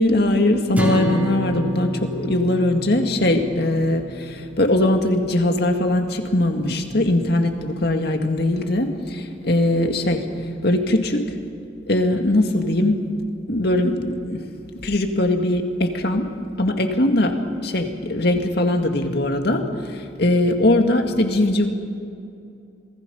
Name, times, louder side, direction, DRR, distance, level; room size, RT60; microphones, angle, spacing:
voice 1, 0.0-10.2 10.6-11.3 11.9-13.0 13.5-14.4 14.8-21.7, left 1 dB, 60° left, 4 dB, 2.1 m, -21 dB
sound 1, 0.8-5.1, left 1 dB, 10° right, 2.9 m, -29 dB
27.0 x 20.5 x 5.6 m, 2.5 s
head